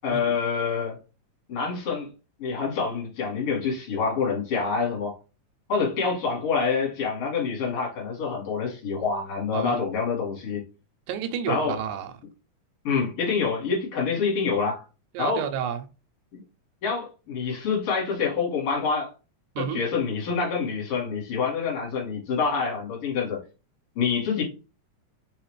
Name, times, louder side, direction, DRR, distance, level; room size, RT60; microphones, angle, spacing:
voice 1, 0.0-1.0 1.5-2.1 2.4-5.2 5.7-10.6 11.5-11.8 12.8-14.8 15.2-15.4 16.8-19.1 19.6-23.4 24.0-24.4, left 5 dB, 50° left, 2.4 m, -26 dB
voice 2, 11.1-12.1 15.1-15.9 19.6-19.8, right 9 dB, 80° right, 1.9 m, -30 dB
4.9 x 2.8 x 3.1 m
omnidirectional pair, 3.8 m